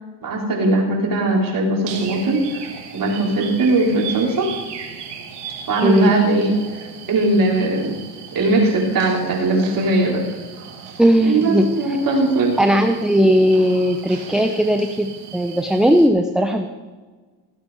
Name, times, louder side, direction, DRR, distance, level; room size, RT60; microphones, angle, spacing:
voice 1, 0.2-2.6 2.9-4.5 5.7-7.9 8.3-10.2 11.2-12.6, right 2 dB, 45° right, -2 dB, 3.9 m, -19 dB
sound 1, 1.9-16.1, right 7 dB, 65° right, 2.2 m, -37 dB
voice 2, 5.8-6.1 11.0-11.7 12.6-16.7, equal, ahead, 6 dB, 0.7 m, -17 dB
16.0 x 8.2 x 4.9 m, 1.4 s
supercardioid pair, 85°, 46 cm